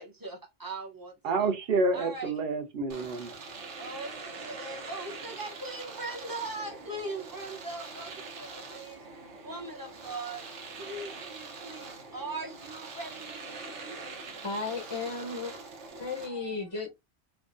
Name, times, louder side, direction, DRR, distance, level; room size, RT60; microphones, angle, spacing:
voice 1, 0.0-1.6 1.9-2.4 3.8-9.0 9.3-10.5 10.8-14.0, right 2 dB, 25° right, 0.6 m, -40 dB
voice 2, 1.2-3.4, right 3 dB, 60° right, 0.8 m, -28 dB
Domestic sounds home sounds, 2.9-16.3, right 4 dB, 90° right, 1.2 m, -43 dB
voice 3, 13.8-14.1 14.4-15.5 16.0-16.9, left 4 dB, 35° left, 0.5 m, -35 dB
4.5 x 2.1 x 2.5 m
omnidirectional pair, 1.1 m